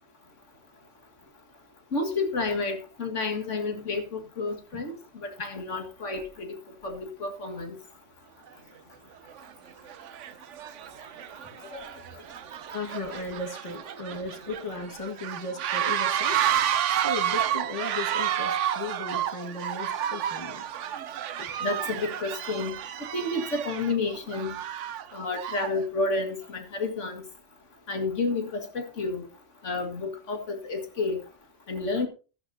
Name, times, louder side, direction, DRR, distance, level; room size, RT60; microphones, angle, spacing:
voice 1, 1.9-6.5 6.8-7.8 21.6-22.8 23.1-24.6 25.1-27.2 27.9-29.2 29.6-31.2 31.7-32.1, left 3 dB, 85° left, 5 dB, 2.3 m, -30 dB
sound 1, 8.5-8.6 9.3-9.5 9.9-25.8, right 10 dB, 85° right, 1.0 m, -31 dB
voice 2, 11.6-12.3 12.7-16.5 16.9-20.7 21.4-21.5, left 3 dB, 25° left, 5 dB, 1.8 m, -36 dB
13.0 x 12.5 x 2.8 m, 0.34 s
omnidirectional pair, 1.2 m